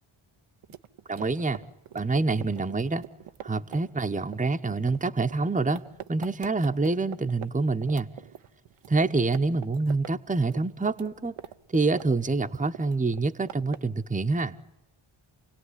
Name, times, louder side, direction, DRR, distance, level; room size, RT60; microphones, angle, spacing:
sound 1, 0.6-7.5 7.8-8.9 9.2-10.1 10.4-12.3 12.5-14.0, right 10 dB, 80° right, 0.9 m, -43 dB
voice 1, 1.1-1.6 1.9-3.0 3.4-5.8 6.1-8.1 8.9-11.3 11.7-14.6, right 3 dB, 15° right, 6 dB, 0.9 m, -26 dB
28.5 x 17.5 x 9.9 m, 0.94 s
cardioid pair, 55°, 50 cm